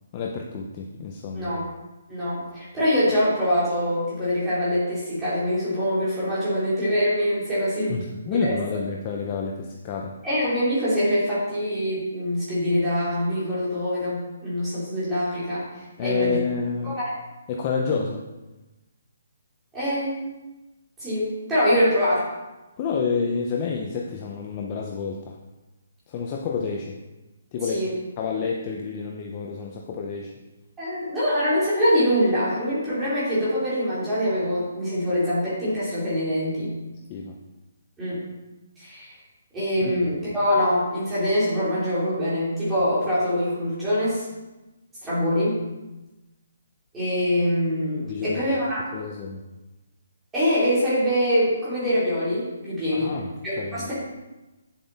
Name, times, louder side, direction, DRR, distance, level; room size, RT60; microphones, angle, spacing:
voice 1, 0.1-1.5 7.9-10.1 16.0-17.0 17.5-18.3 22.8-25.4 26.1-27.0 27.5-27.9 28.2-30.3 37.1-37.4 39.8-40.0 48.1-48.4 48.9-49.4 52.9-53.3 53.6-53.9, left 5 dB, 20° left, 0 dB, 0.6 m, -29 dB
voice 2, 2.1-8.0 8.3-8.5 10.2-15.6 16.0-16.4 16.8-17.1 19.7-20.2 21.0-22.2 27.6-27.9 30.8-36.7 38.0-38.2 38.8-39.1 39.5-44.2 45.0-45.6 46.9-48.8 50.3-53.2 53.4-53.9, equal, 5° right, -12 dB, 3.3 m, -24 dB
9.1 x 7.4 x 4.0 m, 1.1 s
hypercardioid pair, 175°, 0 cm